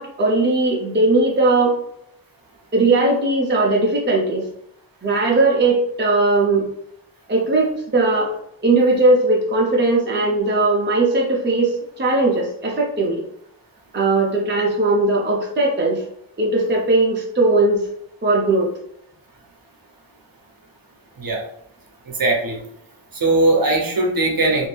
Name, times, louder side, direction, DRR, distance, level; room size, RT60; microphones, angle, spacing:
voice 1, 0.0-1.7 2.7-4.4 5.0-6.7 7.3-8.3 8.6-13.2 13.9-16.0 16.4-17.8 18.2-18.7, right 2 dB, 25° right, -2 dB, 0.6 m, -18 dB
voice 2, 22.2-22.6 23.2-24.7, right 2 dB, 55° right, 1 dB, 0.8 m, -19 dB
2.6 x 2.5 x 3.3 m, 0.72 s
wide cardioid pair, 105°, 43 cm